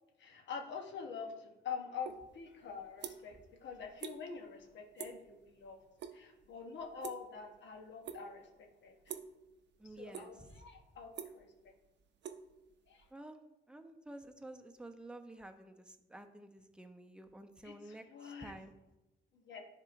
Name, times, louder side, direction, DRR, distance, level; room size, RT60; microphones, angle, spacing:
voice 1, 0.2-5.8 6.1-9.2 10.0-11.7 12.9-13.1 17.6-18.6 19.3-19.6, left 6 dB, 65° left, 3 dB, 1.0 m, -46 dB
sound 1, 2.0-2.2 2.6-3.4 3.7-4.2 4.5-4.7 5.0-5.3 5.6-6.2 6.4-7.6 8.0-8.5 9.0-9.4 9.8-10.5 10.8-13.1, right 9 dB, 65° right, 0.6 m, -46 dB
voice 2, 9.8-10.6 13.1-13.4 13.7-18.7, right 1 dB, 5° right, 6 dB, 0.6 m, -51 dB
10.5 x 3.7 x 2.5 m, 0.98 s
cardioid pair, 90°, 20 cm